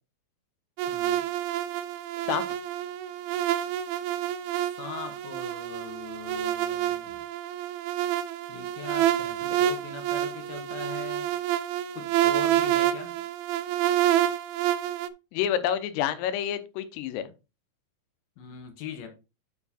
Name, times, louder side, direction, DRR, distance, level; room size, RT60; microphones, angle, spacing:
sound 1, 0.8-15.1, right 12 dB, 80° right, 2.7 m, -28 dB
voice 1, 0.9-1.2 4.5-7.2 8.5-11.3 11.9-13.2 18.4-19.1, left 7 dB, 65° left, 5 dB, 2.5 m, -41 dB
voice 2, 15.3-17.3, left 10 dB, 90° left, 11 dB, 3.5 m, -28 dB
8.9 x 4.6 x 4.2 m, 0.29 s
omnidirectional pair, 5.7 m